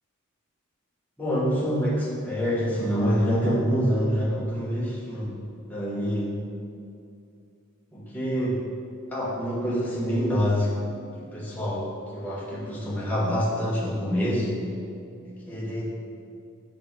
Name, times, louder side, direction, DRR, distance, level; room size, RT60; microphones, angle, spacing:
voice 1, 1.2-5.4 5.7-6.4 7.9-8.6 9.1-14.5 15.2-15.8, equal, 10° left, -6 dB, 1.0 m, -26 dB
5.9 x 4.8 x 3.6 m, 2.5 s
head